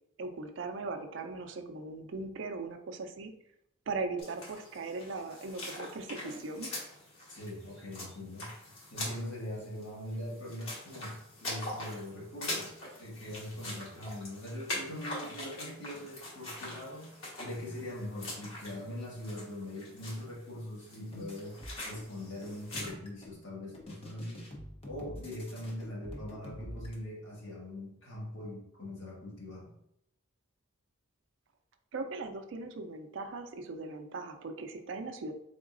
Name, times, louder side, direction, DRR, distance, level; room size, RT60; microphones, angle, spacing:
voice 1, 0.2-3.3 3.9-6.7 31.9-35.3, right 3 dB, 60° right, 6 dB, 0.4 m, -39 dB
sound 1, 4.2-22.9, left 1 dB, 80° left, 1.5 m, -43 dB
voice 2, 7.3-8.5 8.9-17.1 17.4-24.5 24.8-29.7, left 1 dB, 60° left, -5 dB, 1.5 m, -42 dB
sound 2, 21.1-22.1 22.4-23.4 23.7-27.0, equal, 25° left, 0.7 m, -46 dB
3.9 x 3.6 x 2.5 m, 0.78 s
head